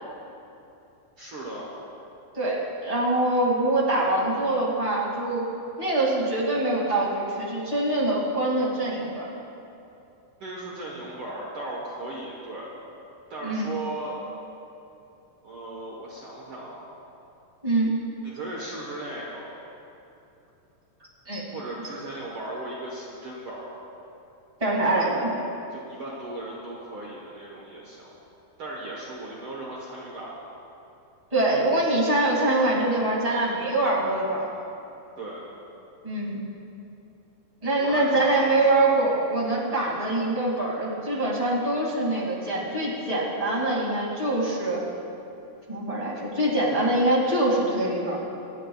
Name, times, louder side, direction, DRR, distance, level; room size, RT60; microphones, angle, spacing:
voice 1, 1.2-1.7 10.4-12.7 13.3-14.2 15.4-16.9 18.2-19.6 21.5-23.8 24.8-25.1 25.7-28.1 28.6-30.4 35.2-35.4 37.8-38.6 39.8-40.1, right 2 dB, 85° right, -4 dB, 1.1 m, -37 dB
voice 2, 2.3-5.4 5.8-9.2 13.4-13.7 17.6-17.9 21.2-21.4 24.6-25.3 31.3-34.5 36.0-36.4 37.6-44.8 45.7-48.2, right 2 dB, 15° right, -4 dB, 1.4 m, -24 dB
27.0 x 9.9 x 2.4 m, 2.8 s
omnidirectional pair, 4.5 m